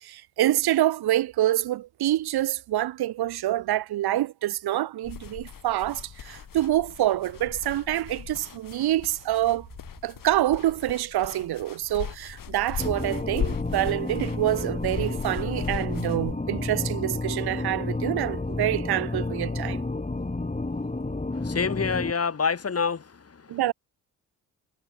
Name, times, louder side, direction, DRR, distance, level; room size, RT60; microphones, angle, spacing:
voice 1, 0.0-9.7 10.0-19.8 23.5-23.7, right 14 dB, 70° right, 5.3 m, -26 dB
sound 1, 5.0-16.3, left 8 dB, 55° left, 6.8 m, -38 dB
sound 2, 12.8-22.1, left 2 dB, 20° left, 7.4 m, -31 dB
voice 2, 21.3-23.6, left 5 dB, 35° left, 3.6 m, -27 dB
hypercardioid pair, 50°, 39 cm